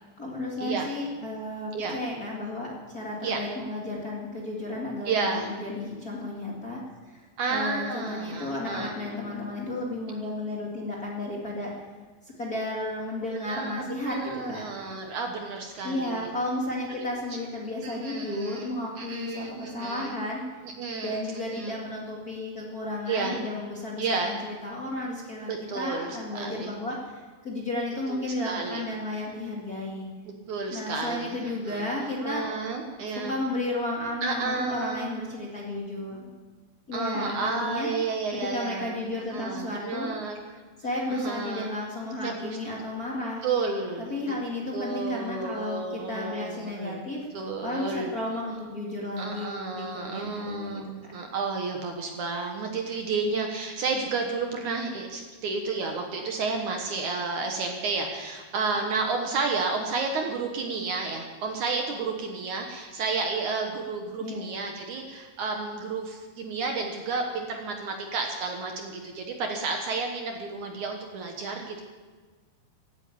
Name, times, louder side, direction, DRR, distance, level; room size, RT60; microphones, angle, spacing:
voice 1, 0.2-6.8 7.1-11.7 12.2-14.6 15.8-20.4 21.0-27.0 27.4-30.1 30.7-32.4 33.2-36.2 36.9-37.9 38.3-40.1 40.8-43.5 44.0-47.2 47.6-51.1 64.2-64.5, left 1 dB, 30° left, -4 dB, 2.0 m, -33 dB
voice 2, 5.1-5.5 7.4-8.9 13.3-16.3 16.9-17.1 17.8-20.2 20.6-21.8 23.1-23.4 24.0-24.3 25.5-26.7 28.1-28.8 30.5-31.4 31.6-33.4 34.2-35.1 36.1-36.3 36.9-40.4 41.1-41.7 42.2-42.6 43.4-44.3 44.7-47.0 47.3-48.1 49.2-71.8, right 4 dB, 65° right, 3 dB, 2.3 m, -31 dB
16.0 x 9.2 x 8.6 m, 1.4 s
omnidirectional pair, 4.4 m